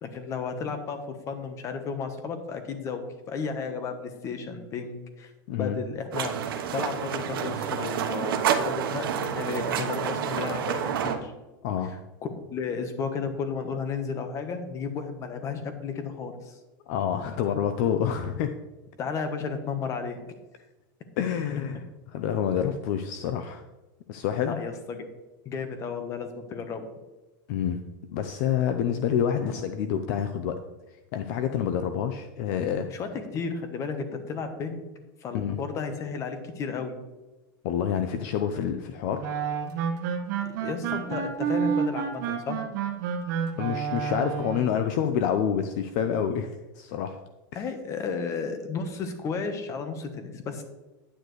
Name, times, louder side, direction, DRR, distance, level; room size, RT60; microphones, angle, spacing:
voice 1, 0.0-6.3 6.7-11.3 12.5-16.6 19.0-20.2 24.5-25.0 25.4-26.9 29.4-29.5 32.9-34.8 35.2-37.0 40.4-42.6 47.5-50.6, left 5 dB, 25° left, 8 dB, 1.1 m, -33 dB
sound 1, 6.1-11.2, right 8 dB, 90° right, 1.1 m, -29 dB
voice 2, 11.6-12.0 16.9-18.5 21.2-23.6 24.1-24.6 27.5-27.8 28.1-30.6 31.1-32.9 35.3-35.6 37.6-39.2 43.6-47.2 47.5-47.6, left 8 dB, 50° left, 8 dB, 0.6 m, -28 dB
sound 2, 39.2-44.7, right 7 dB, 55° right, 1.4 m, -29 dB
10.0 x 9.2 x 3.2 m, 1.1 s
supercardioid pair, 155°, 12 cm